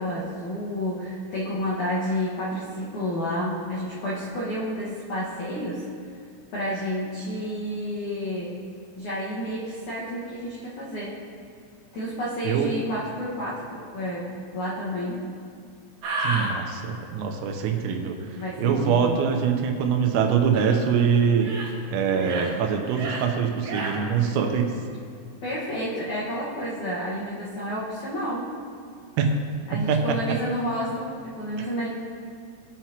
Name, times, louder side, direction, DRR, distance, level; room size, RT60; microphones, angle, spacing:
voice 1, 0.0-5.8 6.5-8.6 9.0-11.2 11.9-15.3 18.4-19.2 25.4-28.5 29.7-31.9, equal, 80° left, -8 dB, 1.7 m, -30 dB
sound 1, 16.0-16.5 20.5-20.8 21.3-21.7 22.1-22.5 22.9-23.2 23.6-24.0, right 2 dB, 70° right, 1.8 m, -31 dB
voice 2, 16.2-24.7 29.2-29.3 29.7-30.2 31.6-31.7, right 7 dB, 85° right, 3 dB, 3.5 m, -24 dB
19.0 x 7.5 x 2.9 m, 2.2 s
omnidirectional pair, 6.0 m